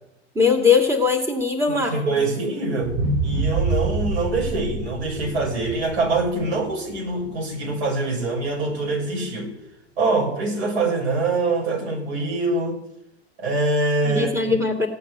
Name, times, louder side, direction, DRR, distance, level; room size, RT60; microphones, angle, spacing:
voice 1, 0.4-1.9 14.0-14.9, left 5 dB, 10° right, 2 dB, 2.4 m, -20 dB
voice 2, 1.7-9.5 10.0-12.8 13.4-14.3, right 3 dB, 70° right, -1 dB, 6.9 m, -24 dB
sound 1, 2.8-7.1 7.6-7.7, right 2 dB, 40° right, 1.6 m, -26 dB
16.5 x 8.4 x 9.5 m, 0.89 s
hypercardioid pair, 95°, 34 cm